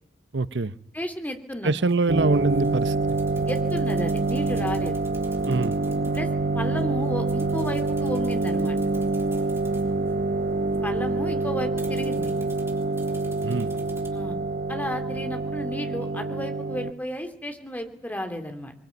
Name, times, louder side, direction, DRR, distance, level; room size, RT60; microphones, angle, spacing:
voice 1, 0.3-0.7 1.6-3.2 5.5-5.8 13.4-13.7, right 3 dB, 75° right, 15 dB, 0.9 m, -25 dB
voice 2, 0.9-1.7 3.5-5.0 6.1-8.8 10.8-12.3 14.1-14.4 14.7-18.7, equal, 10° left, 6 dB, 2.9 m, -33 dB
sound 1, 1.9-14.1, right 3 dB, 15° right, 3.7 m, -52 dB
sound 2, 2.1-16.9, right 3 dB, 55° right, 1.1 m, -26 dB
23.0 x 21.0 x 9.3 m, 0.78 s
head